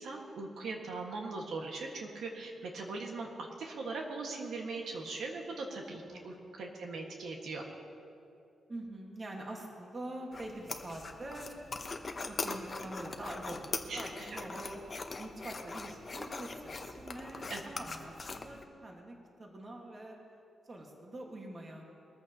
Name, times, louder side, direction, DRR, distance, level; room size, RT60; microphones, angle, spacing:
voice 1, 0.0-7.6 13.9-14.4 17.5-17.6, right 3 dB, 65° right, 0 dB, 1.6 m, -40 dB
voice 2, 8.7-11.5 12.2-14.8 15.2-20.2 20.6-21.9, right 1 dB, 25° right, 0 dB, 1.6 m, -45 dB
sound 1, 10.3-18.6, left 3 dB, 25° left, 0.7 m, -41 dB
22.0 x 14.0 x 2.9 m, 2.7 s
wide cardioid pair, 180°, 0 cm